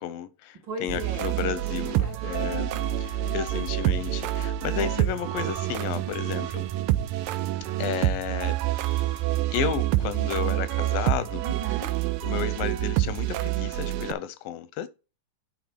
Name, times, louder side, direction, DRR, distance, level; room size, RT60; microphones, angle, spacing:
voice 1, 0.0-2.7 3.0-6.7 7.8-9.2 9.5-11.4 12.2-14.9, left 10 dB, 85° left, 2.4 m, -32 dB
voice 2, 0.6-1.3 1.7-3.7 5.9-6.2 11.4-11.9, right 3 dB, 50° right, 1.6 m, -39 dB
sound 1, 0.9-14.1, right 14 dB, 90° right, 2.4 m, -27 dB
9.5 x 4.5 x 4.5 m
omnidirectional pair, 3.9 m